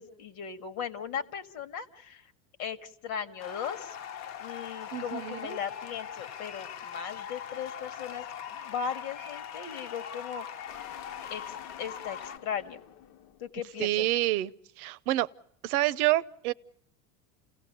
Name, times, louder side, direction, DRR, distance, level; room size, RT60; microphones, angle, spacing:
voice 1, 0.0-2.3 2.6-4.0 4.4-10.5 11.3-12.8 13.4-14.1, left 7 dB, 80° left, 2.0 m, -37 dB
sound 1, 3.4-12.4, left 8 dB, 40° left, 1.0 m, -41 dB
voice 2, 4.9-5.6 13.8-14.5 14.8-15.3 15.6-16.5, right 16 dB, 85° right, 0.8 m, -27 dB
sound 2, 10.7-13.7, left 9 dB, 65° left, 1.3 m, -50 dB
29.0 x 16.5 x 6.8 m
supercardioid pair, 120°, 42 cm